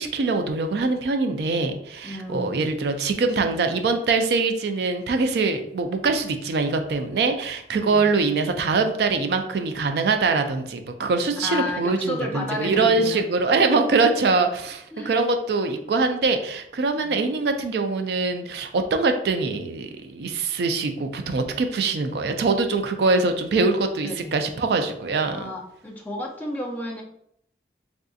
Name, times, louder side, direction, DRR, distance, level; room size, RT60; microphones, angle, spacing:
voice 1, 0.0-25.5, right 3 dB, 65° right, 6 dB, 0.3 m, -23 dB
voice 2, 2.0-2.6 7.9-8.1 11.4-13.2 14.9-15.2 17.0-17.3 24.0-24.3 25.3-27.0, left 1 dB, 10° left, -1 dB, 0.4 m, -32 dB
3.6 x 2.5 x 2.4 m, 0.72 s
head